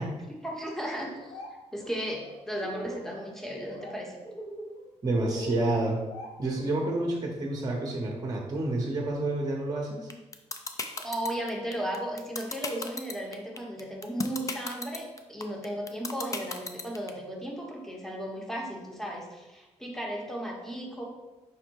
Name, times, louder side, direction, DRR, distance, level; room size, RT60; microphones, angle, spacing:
voice 1, 0.3-1.4 1.7-4.2 11.0-21.0, right 1 dB, 5° left, -1 dB, 0.8 m, -35 dB
Laughter, 1.0-1.5 1.8-3.2 3.5-3.9 4.2-7.1, equal, 55° left, 0.9 m, -40 dB
voice 2, 5.0-6.0 6.4-10.1, right 2 dB, 30° right, 0 dB, 0.8 m, -29 dB
sound 1, 10.1-17.1, left 3 dB, 25° left, 0.4 m, -34 dB
5.2 x 2.1 x 4.5 m, 1.1 s
cardioid pair, 110°, 12 cm